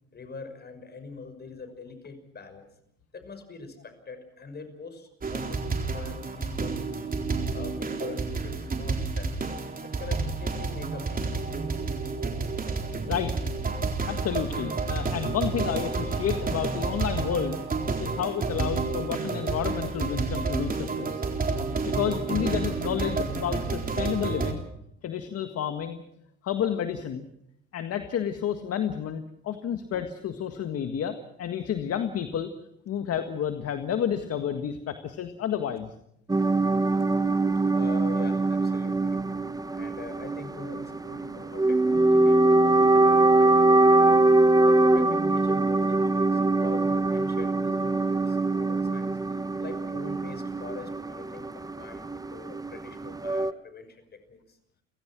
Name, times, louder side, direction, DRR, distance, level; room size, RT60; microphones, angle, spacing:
voice 1, 0.1-2.7 3.1-6.8 7.5-9.5 10.0-11.9 37.7-39.2 39.7-44.2 44.7-49.2 49.6-54.6, left 4 dB, 35° left, 9 dB, 6.0 m, -43 dB
sound 1, 5.2-24.5, right 4 dB, 30° right, 3.9 m, -30 dB
voice 2, 13.0-13.3 14.1-17.6 18.0-21.3 21.8-24.6 25.0-26.0 26.4-27.3 27.7-32.5 32.9-35.9, left 9 dB, 55° left, 7 dB, 1.8 m, -30 dB
sound 2, 36.3-53.5, right 2 dB, 10° right, 0.9 m, -23 dB
30.0 x 16.5 x 6.1 m, 0.76 s
supercardioid pair, 85°, 29 cm